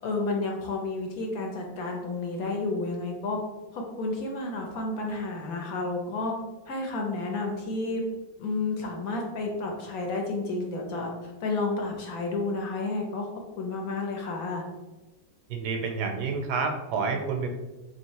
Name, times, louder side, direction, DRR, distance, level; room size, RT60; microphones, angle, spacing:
voice 1, 0.0-3.4 3.7-6.4 6.7-8.0 8.4-13.3 13.6-14.6, left 3 dB, 65° left, 1 dB, 1.0 m, -31 dB
voice 2, 15.5-17.5, right 5 dB, 75° right, 3 dB, 1.2 m, -29 dB
3.1 x 2.9 x 4.6 m, 1.1 s
omnidirectional pair, 1.8 m